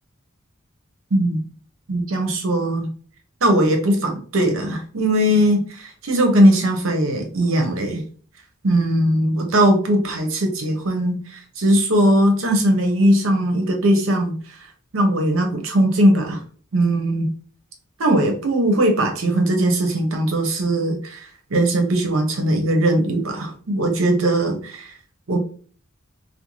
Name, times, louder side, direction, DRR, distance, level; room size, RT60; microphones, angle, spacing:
voice 1, 1.1-1.4 1.9-2.9 3.4-8.0 8.6-14.3 14.9-16.4 16.7-17.3 18.0-24.9 25.3-25.4, right 1 dB, 70° right, 4 dB, 0.7 m, -19 dB
2.5 x 2.1 x 3.0 m, 0.43 s
head